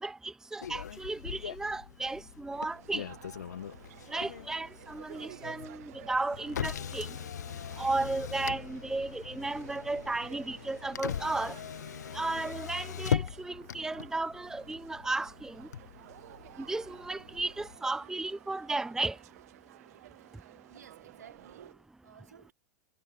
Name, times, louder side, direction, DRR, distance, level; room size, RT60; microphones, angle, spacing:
voice 1, 0.0-3.1 4.1-7.2 7.8-11.6 12.1-15.7 16.6-19.2, right 2 dB, 5° right, 0.7 m, -34 dB
Motor vehicle (road), 0.6-17.8, left 8 dB, 75° left, 1.4 m, -40 dB
sound 1, 2.5-21.7, right 16 dB, 60° right, 1.0 m, -53 dB
voice 2, 20.4-22.5, right 8 dB, 80° right, 3.1 m, -55 dB
hypercardioid pair, 95°, 9 cm